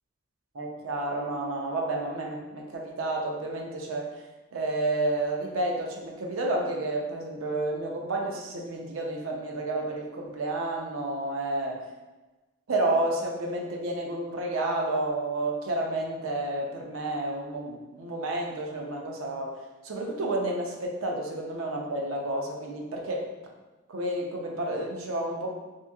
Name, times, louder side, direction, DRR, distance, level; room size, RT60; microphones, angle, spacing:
voice 1, 0.5-4.1 4.5-11.7 12.7-19.5 19.8-23.3 23.9-25.5, right 2 dB, 90° right, 0 dB, 0.5 m, -30 dB
2.9 x 2.6 x 2.3 m, 1.2 s
head